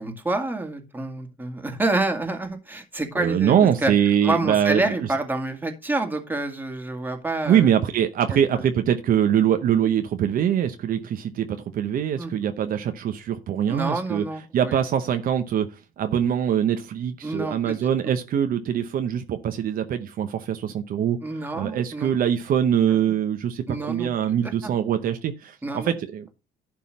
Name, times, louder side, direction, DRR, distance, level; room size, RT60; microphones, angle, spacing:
voice 1, 0.0-3.5 3.8-3.9 4.2-7.7 8.3-8.7 12.2-12.3 13.7-14.8 17.2-17.8 21.2-22.1 23.7-24.7 25.6-25.9, right 2 dB, 10° right, 2.1 m, -28 dB
voice 2, 3.2-4.9 7.5-14.2 14.5-21.2 21.5-26.3, right 9 dB, 60° right, 0.9 m, -23 dB
11.5 x 3.8 x 6.3 m
cardioid pair, 110°, 17 cm